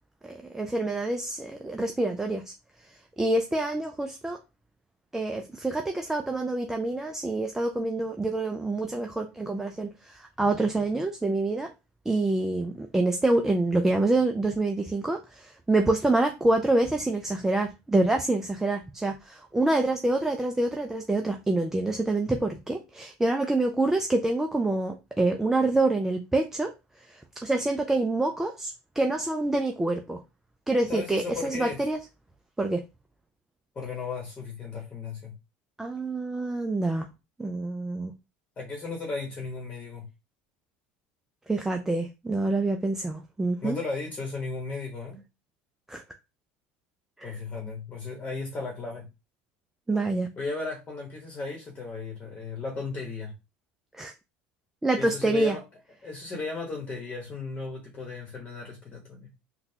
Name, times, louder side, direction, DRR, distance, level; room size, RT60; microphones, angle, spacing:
voice 1, 0.2-2.5 3.2-4.4 5.1-11.7 12.1-26.7 27.1-30.2 30.7-32.0 32.6-32.8 35.8-37.1 37.4-38.1 41.5-43.8 45.9-46.0 47.2-47.4 49.9-50.3 53.9-54.1 54.8-55.6, right 2 dB, 10° right, 0.4 m, -26 dB
voice 2, 30.9-31.9 33.7-35.4 38.6-40.1 43.6-45.2 47.2-49.1 50.4-53.3 55.0-55.6 56.0-59.3, left 4 dB, 25° left, 1.1 m, -35 dB
3.8 x 2.2 x 2.8 m
supercardioid pair, 115°, 5 cm